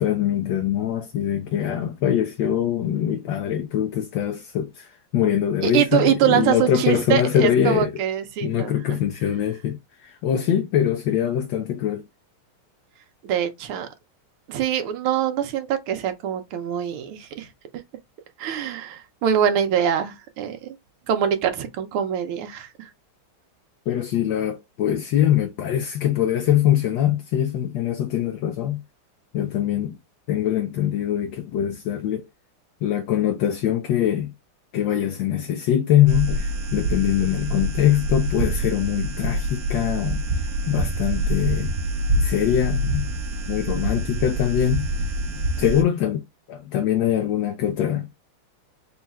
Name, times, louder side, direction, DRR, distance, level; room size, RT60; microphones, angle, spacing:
voice 1, 0.0-7.9 8.4-12.0 23.9-28.8 29.3-30.0 30.3-32.2 32.8-34.3 34.7-41.7 42.2-43.1 43.5-44.9 45.6-46.2 46.5-48.1, left 10 dB, 75° left, 1.2 m, -23 dB
voice 2, 5.6-9.0 13.2-13.9 14.5-17.5 18.4-20.8 21.1-22.9, right 9 dB, 85° right, 1.7 m, -24 dB
sound 1, 36.1-45.8, right 1 dB, 60° right, 1.3 m, -26 dB
4.3 x 2.4 x 4.1 m
omnidirectional pair, 2.3 m